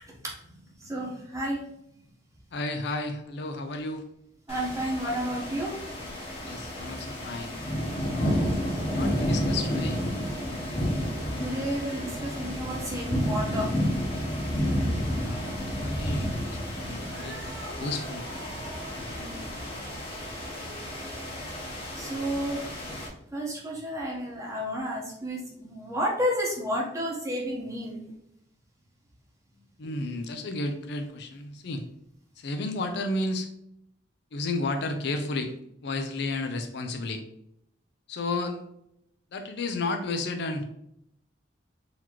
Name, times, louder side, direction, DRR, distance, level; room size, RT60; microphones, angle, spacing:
voice 1, 0.1-1.7 2.0-2.1 4.5-5.7 11.4-13.7 19.1-19.4 21.9-22.6 23.3-28.0, equal, 15° right, -3 dB, 1.0 m, -32 dB
voice 2, 2.5-4.1 6.4-7.6 8.1-8.5 8.9-10.1 15.2-17.4 17.8-18.3 18.9-19.4 29.8-31.9 32.4-33.5 34.3-35.5 35.8-37.2 38.1-38.6 39.3-40.7, left 2 dB, 65° left, 6 dB, 0.4 m, -32 dB
sound 1, 4.5-23.1, equal, 35° left, 0.9 m, -31 dB
Cat, 16.9-22.5, right 2 dB, 80° right, 0.7 m, -46 dB
4.0 x 2.9 x 2.9 m, 0.77 s
head